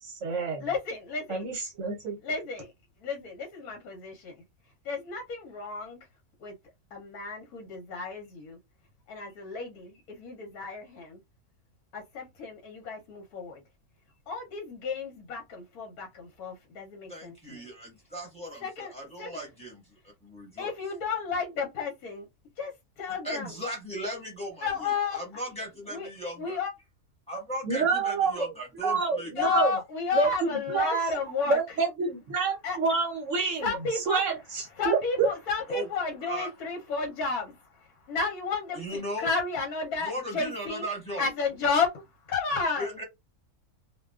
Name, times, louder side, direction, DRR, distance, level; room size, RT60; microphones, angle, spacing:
voice 1, 0.0-0.7 1.3-2.2 27.6-28.5 28.8-29.8 30.1-31.0 31.5-35.3, right 4 dB, 65° right, 0.9 m, -28 dB
voice 2, 0.6-1.5 2.2-2.7 3.0-4.3 4.8-6.0 6.4-6.5 6.9-8.6 9.1-11.2 11.9-13.6 14.3-17.3 18.6-18.9 19.2-19.3 20.6-22.2 22.6-22.7 23.0-23.5 24.6-25.2 25.9-26.1 26.4-26.7 29.4-31.6 32.6-32.8 33.6-34.2 34.8-37.5 38.1-40.8 41.2-41.9 42.3-42.9, left 4 dB, 75° left, 1.2 m, -32 dB
voice 3, 17.1-20.8 23.2-26.6 27.3-29.6 35.7-35.9 36.3-36.5 38.7-39.3 39.9-41.3 42.8-43.0, equal, 5° left, 1.1 m, -37 dB
2.5 x 2.2 x 2.2 m
omnidirectional pair, 1.6 m